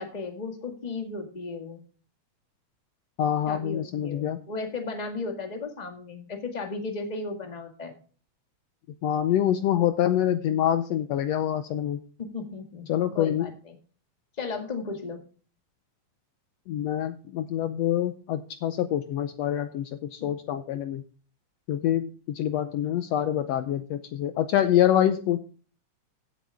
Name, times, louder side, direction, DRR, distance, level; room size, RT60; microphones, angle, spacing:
voice 1, 0.0-1.8 3.5-7.9 12.3-12.9 13.1-13.8 14.4-15.2, left 3 dB, 15° left, 4 dB, 1.6 m, -35 dB
voice 2, 3.2-4.4 9.0-12.0 12.9-13.5 16.7-21.0 21.7-25.4, left 11 dB, 75° left, 10 dB, 1.7 m, -26 dB
15.5 x 8.3 x 3.4 m, 0.39 s
omnidirectional pair, 3.4 m